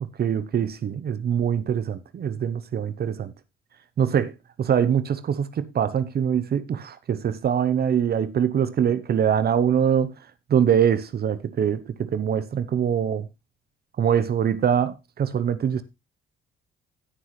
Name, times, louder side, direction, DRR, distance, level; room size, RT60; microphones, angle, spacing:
voice 1, 0.2-3.3 4.0-4.3 4.6-10.1 10.5-13.3 14.0-15.8, right 8 dB, 50° right, 0.8 m, -23 dB
16.0 x 5.7 x 3.2 m
cardioid pair, 90°, 20 cm